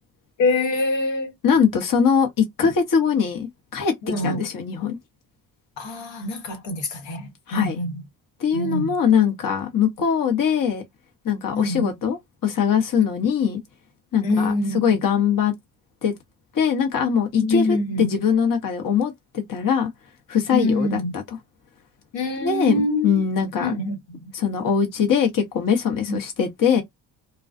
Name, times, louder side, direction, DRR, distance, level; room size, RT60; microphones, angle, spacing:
voice 1, 0.4-1.3 4.1-4.4 5.8-8.0 8.5-9.0 11.5-11.9 14.2-15.0 17.4-18.2 20.5-21.1 22.1-23.1 23.6-24.2 26.1-26.2, left 2 dB, 65° left, 1.2 m, -25 dB
voice 2, 1.4-3.9 4.2-5.0 7.5-7.8 8.4-10.8 11.2-13.6 14.1-15.5 16.0-16.1 16.5-19.9 20.3-21.4 22.4-23.7 24.3-26.8, left 7 dB, 45° left, 1.0 m, -22 dB
2.3 x 2.2 x 2.5 m
supercardioid pair, 55°, 48 cm